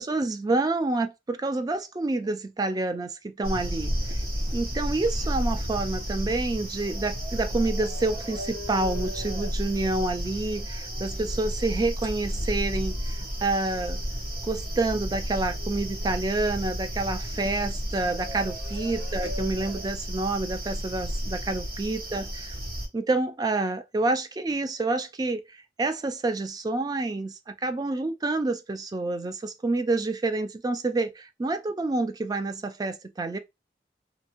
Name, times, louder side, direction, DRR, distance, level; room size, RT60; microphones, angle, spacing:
voice 1, 0.0-4.2 4.5-14.0 14.4-22.5 22.9-33.4, right 2 dB, 20° right, 0.3 m, -28 dB
sound 1, 3.4-22.9, equal, 55° right, 1.0 m, -32 dB
2.6 x 2.6 x 2.8 m
head